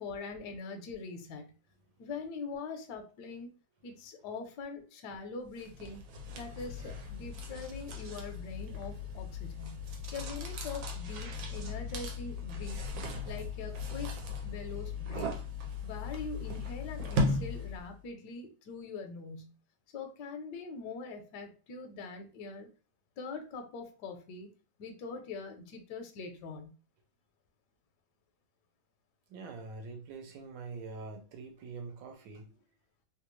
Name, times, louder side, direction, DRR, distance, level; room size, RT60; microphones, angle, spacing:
voice 1, 0.0-1.5 2.0-3.6 3.8-6.0 6.3-9.8 10.1-12.8 13.2-14.1 14.4-15.4 15.8-19.5 19.9-22.7 23.2-24.5 24.8-26.7, left 4 dB, 70° left, 1.1 m, -43 dB
sound 1, 5.6-17.9, left 3 dB, 90° right, 1.5 m, -37 dB
voice 2, 29.3-32.5, right 4 dB, 75° right, 1.4 m, -44 dB
3.3 x 2.3 x 3.0 m
omnidirectional pair, 2.1 m